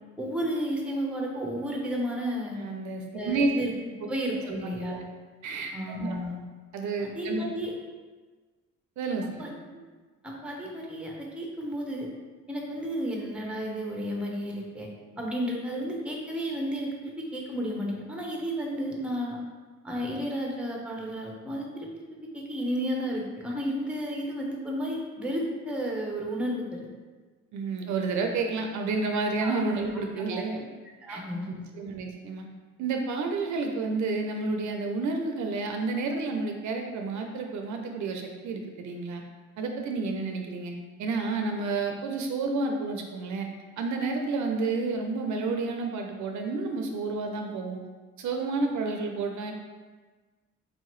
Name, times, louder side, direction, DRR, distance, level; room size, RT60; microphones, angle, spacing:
voice 1, 0.2-2.6 3.1-3.7 4.0-5.0 5.7-6.3 7.0-7.7 9.4-9.5 10.2-12.1 12.5-14.9 15.2-19.4 19.8-21.9 22.3-26.8 29.4-29.6 30.2-30.4 31.0-31.6, equal, 5° right, -1 dB, 0.8 m, -32 dB
voice 2, 2.6-3.5 4.5-5.0 5.4-6.2 6.7-7.4 9.0-9.5 27.5-30.7 31.1-31.2 31.5-32.5 32.8-39.2 39.6-40.7 41.0-43.5 43.8-47.8 48.2-49.5, right 3 dB, 70° right, 3 dB, 0.5 m, -30 dB
4.2 x 2.7 x 3.1 m, 1.4 s
cardioid pair, 90°, 30 cm